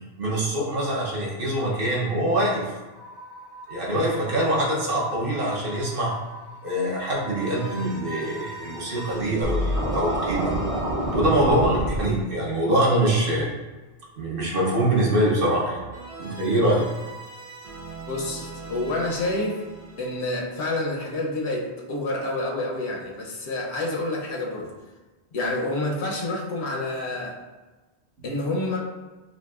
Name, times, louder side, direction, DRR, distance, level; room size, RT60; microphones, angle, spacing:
voice 1, 0.2-2.7 3.7-6.1 6.6-10.5 11.1-13.5 14.2-15.9 16.2-16.9, right 1 dB, 55° right, -4 dB, 1.0 m, -24 dB
sound 1, 2.9-9.2, right 1 dB, 30° left, 0.5 m, -42 dB
sound 2, 7.4-13.4 15.9-21.6, right 2 dB, 85° right, 1.4 m, -42 dB
Scratching (performance technique), 9.4-12.0, equal, 40° right, 0.7 m, -26 dB
voice 2, 18.1-19.6 20.0-24.7 25.3-27.4 28.2-28.8, left 2 dB, 75° left, -1 dB, 1.0 m, -28 dB
5.0 x 2.6 x 2.4 m, 1.2 s
omnidirectional pair, 1.1 m